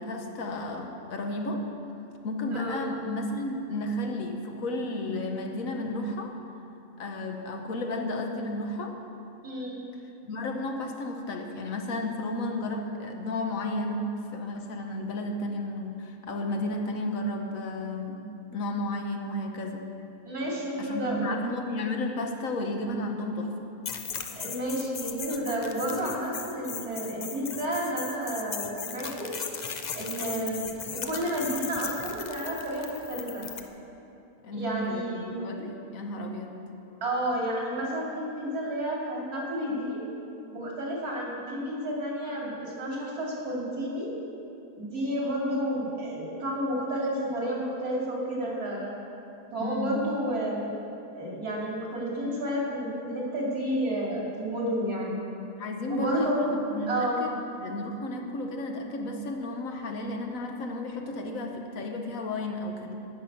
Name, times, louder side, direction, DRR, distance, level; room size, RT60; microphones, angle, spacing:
voice 1, 0.0-1.7 2.2-6.4 7.0-9.0 10.2-18.3 18.5-19.9 20.8-23.5 34.4-36.6 49.6-50.0 55.6-63.0, left 1 dB, 65° left, 3 dB, 1.3 m, -33 dB
voice 2, 2.5-2.9 9.4-9.8 20.2-21.4 24.4-29.3 29.9-33.5 34.5-35.4 37.0-40.0 40.5-44.1 44.8-48.9 49.5-50.7 51.1-55.2 55.9-56.5 56.9-57.2, right 1 dB, 80° right, -4 dB, 3.1 m, -31 dB
sound 1, 23.9-33.7, left 6 dB, 85° left, 0.3 m, -37 dB
11.5 x 5.8 x 8.5 m, 2.7 s
omnidirectional pair, 1.6 m